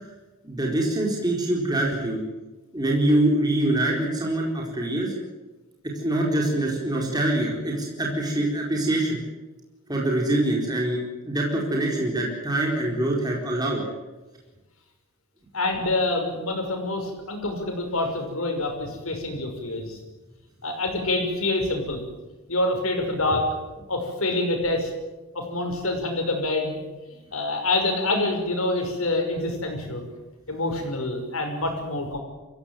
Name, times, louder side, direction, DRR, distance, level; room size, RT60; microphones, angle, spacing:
voice 1, 0.4-2.2 2.7-5.1 6.0-9.2 9.9-13.8, right 1 dB, 20° right, -2 dB, 4.4 m, -24 dB
voice 2, 15.5-20.0 20.6-22.0 22.5-23.5 23.9-24.9 25.3-26.8 27.1-30.1 30.5-32.2, left 2 dB, 80° left, 3 dB, 5.9 m, -26 dB
24.5 x 16.0 x 9.3 m, 1.1 s
head